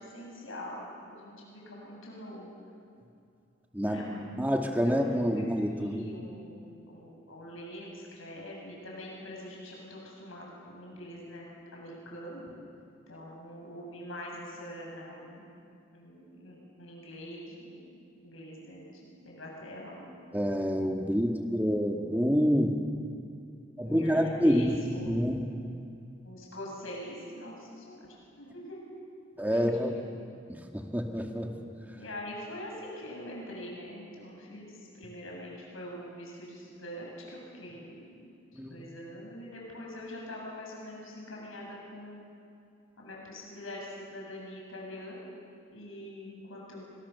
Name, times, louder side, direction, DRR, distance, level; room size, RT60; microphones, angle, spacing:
voice 1, 0.0-2.5 3.8-12.5 13.1-15.5 15.9-17.8 18.2-20.1 21.9-22.1 23.8-25.5 26.2-29.0 29.5-30.0 31.9-38.3 38.6-42.2 43.0-45.3 45.7-46.9, left 1 dB, 80° left, -2 dB, 7.9 m, -44 dB
voice 2, 4.4-6.0 20.3-22.7 23.8-24.8 25.0-25.5 29.4-29.9 30.5-31.5 38.5-38.8, equal, 10° right, 2 dB, 2.2 m, -27 dB
30.0 x 25.5 x 7.1 m, 2.5 s
head